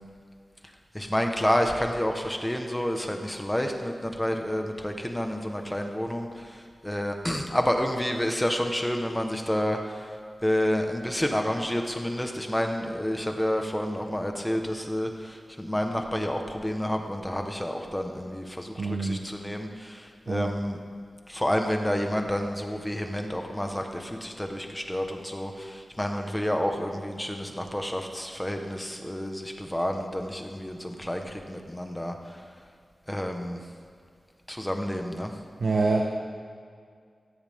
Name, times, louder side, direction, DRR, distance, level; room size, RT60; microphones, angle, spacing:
voice 1, 0.9-6.3 6.8-9.8 10.4-20.8 21.3-32.2 33.1-33.6 34.5-35.3, equal, 10° left, 3 dB, 1.2 m, -29 dB
voice 2, 18.8-19.3 20.3-20.5 35.6-36.0, right 3 dB, 70° right, 1 dB, 1.2 m, -25 dB
16.5 x 16.0 x 3.7 m, 2.1 s
wide cardioid pair, 125°, 0 cm